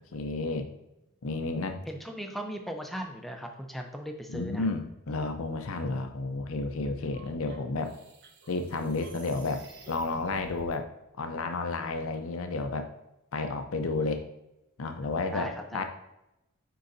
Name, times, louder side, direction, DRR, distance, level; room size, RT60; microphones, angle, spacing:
voice 1, 0.1-0.7 1.2-1.8 4.3-7.9 8.5-9.6 9.9-10.9 11.2-12.9 13.3-14.2 14.8-15.8, left 3 dB, 70° left, 6 dB, 0.6 m, -31 dB
voice 2, 1.9-4.6 15.3-15.8, equal, ahead, 3 dB, 0.5 m, -38 dB
sound 1, 7.0-10.8, right 3 dB, 50° right, 0.9 m, -51 dB
9.3 x 3.9 x 2.6 m, 0.89 s
head